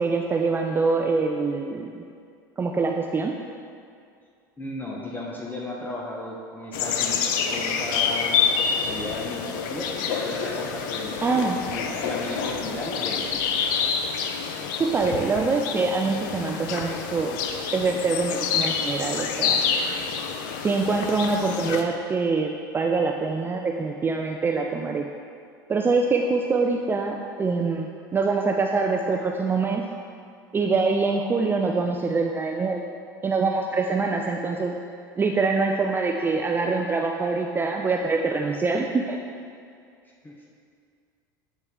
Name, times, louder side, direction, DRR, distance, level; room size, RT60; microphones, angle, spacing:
voice 1, 0.0-2.0 2.6-3.3 11.2-11.6 14.8-17.4 17.7-19.6 20.6-25.1 25.7-29.8 30.5-32.8 33.2-34.8 35.2-39.2, right 4 dB, 20° right, 1 dB, 0.4 m, -24 dB
voice 2, 4.6-7.2 7.5-13.3 40.2-40.3, left 1 dB, 15° left, -2 dB, 0.7 m, -35 dB
sound 1, 6.7-21.8, left 6 dB, 70° left, 0.5 m, -27 dB
8.3 x 4.0 x 3.6 m, 2.3 s
hypercardioid pair, 95°, 11 cm